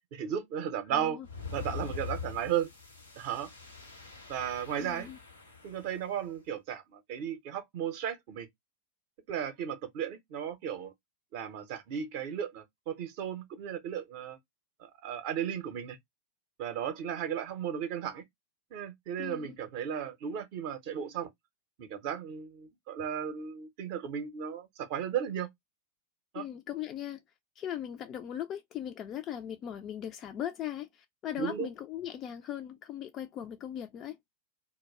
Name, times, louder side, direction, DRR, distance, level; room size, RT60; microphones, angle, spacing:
voice 1, 0.1-1.2 1.5-2.7 3.2-3.5 4.3-5.1 5.6-8.5 9.3-10.9 11.3-14.4 14.8-16.0 16.6-18.2 18.7-21.3 21.8-25.5 26.3-26.4 31.4-31.7, right 9 dB, 45° right, 0.6 m, -35 dB
voice 2, 0.9-1.3 4.8-5.2 19.2-19.6 26.3-27.2 27.6-34.2, left 10 dB, 30° left, 0.3 m, -39 dB
sound 1, 1.2-6.1, left 6 dB, 80° left, 0.8 m, -43 dB
2.3 x 2.1 x 3.1 m
figure-of-eight pair, 90°, 0 cm